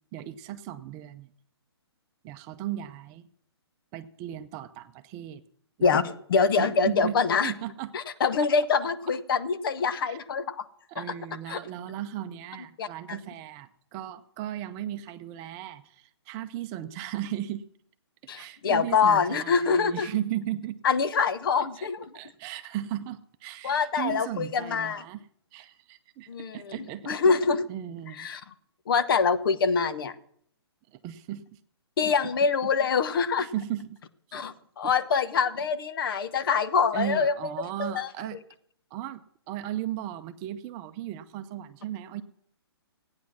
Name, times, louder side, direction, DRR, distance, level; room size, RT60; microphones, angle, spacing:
voice 1, 0.1-1.3 2.2-3.3 3.9-5.4 5.8-6.1 6.6-7.9 10.1-10.2 10.9-17.7 18.3-20.8 21.8-21.9 22.1-25.3 25.5-27.2 27.7-28.3 30.9-31.6 33.4-34.0 34.3-34.4 34.8-34.9 36.0-36.2 36.9-38.4 38.9-42.2, right 12 dB, 25° right, 10 dB, 0.7 m, -36 dB
voice 2, 5.8-7.5 7.9-10.6 10.9-11.0 11.5-11.6 12.8-13.2 18.3-20.1 20.8-22.0 23.6-25.0 26.3-26.8 27.1-27.7 28.2-28.4 28.9-30.1 32.0-33.5 34.3-38.1, left 5 dB, 55° left, 12 dB, 1.1 m, -25 dB
15.0 x 9.6 x 6.0 m, 0.68 s
hypercardioid pair, 135°, 14 cm